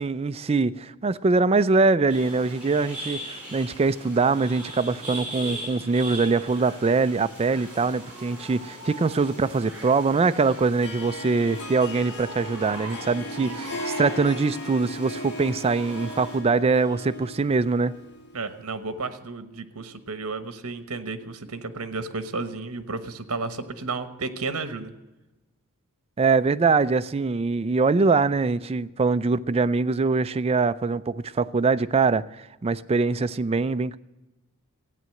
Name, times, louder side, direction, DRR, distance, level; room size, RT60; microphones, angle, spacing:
voice 1, 0.0-17.9 26.2-34.0, right 4 dB, 25° right, 0.4 m, -23 dB
sound 1, 2.1-16.4, right 1 dB, 5° right, 6.5 m, -40 dB
Harp, 10.8-18.5, left 1 dB, 50° left, 1.4 m, -37 dB
voice 2, 13.4-13.8 18.3-24.9, right 3 dB, 65° right, 1.2 m, -33 dB
14.0 x 9.3 x 7.7 m
head